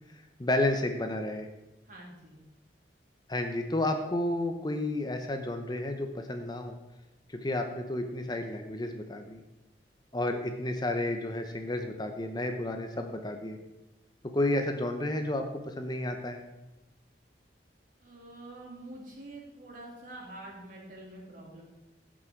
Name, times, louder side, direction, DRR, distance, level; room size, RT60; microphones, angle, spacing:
voice 1, 0.4-1.5 3.3-6.8 7.3-9.4 10.1-13.6 14.3-16.4, left 1 dB, 25° left, 5 dB, 0.8 m, -31 dB
voice 2, 1.8-2.4 18.0-21.6, right 1 dB, 50° right, -3 dB, 3.1 m, -46 dB
16.0 x 6.2 x 4.5 m, 1.0 s
head